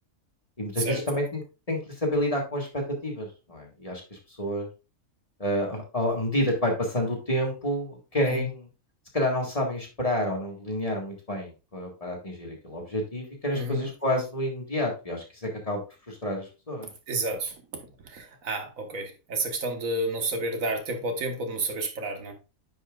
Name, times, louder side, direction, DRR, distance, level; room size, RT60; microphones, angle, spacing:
voice 1, 0.6-1.4 1.7-4.7 5.4-8.7 9.1-15.8 16.1-16.9, equal, 25° left, 1.7 m, -29 dB
voice 2, 13.5-13.9 17.1-17.5 18.0-22.3, right 1 dB, 75° right, 1.6 m, -30 dB
9.3 x 5.6 x 2.4 m
omnidirectional pair, 1.4 m